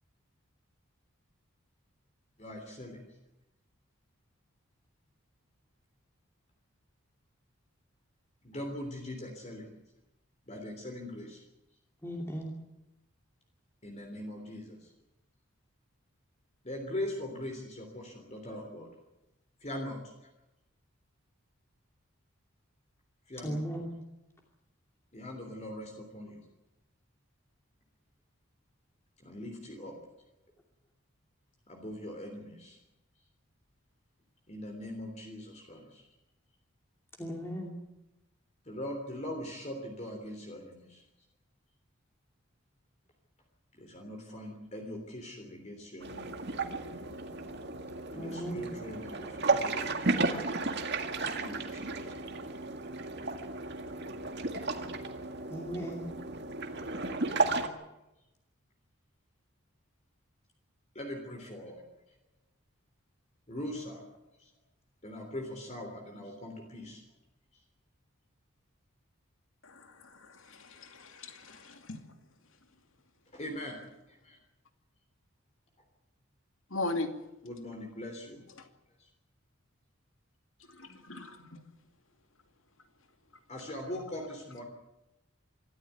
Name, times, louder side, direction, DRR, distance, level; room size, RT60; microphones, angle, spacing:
voice 1, 2.4-3.1 8.4-9.7 10.5-11.4 13.8-14.9 16.6-18.9 19.6-20.3 23.3-23.6 25.1-26.4 29.2-30.0 31.7-32.8 34.5-36.1 38.7-41.0 43.7-46.3 48.1-49.9 51.2-52.4 54.5-55.0 57.1-57.6 61.0-61.8 63.5-64.0 64.4-64.5 65.0-67.0 73.3-73.8 74.1-74.4 77.4-78.4 79.0-79.1 83.5-84.6, left 1 dB, 30° left, 2 dB, 3.3 m, -41 dB
voice 2, 12.0-12.5 23.4-23.9 37.2-37.7 48.1-48.6 55.5-56.1, equal, 10° left, 0 dB, 2.6 m, -37 dB
sound 1, 46.0-57.7, right 3 dB, 50° right, 2.0 m, -34 dB
voice 3, 69.6-72.1 76.7-77.1 78.6-78.7 80.6-81.6, left 2 dB, 70° left, 6 dB, 2.6 m, -39 dB
25.0 x 14.0 x 9.4 m, 0.95 s
head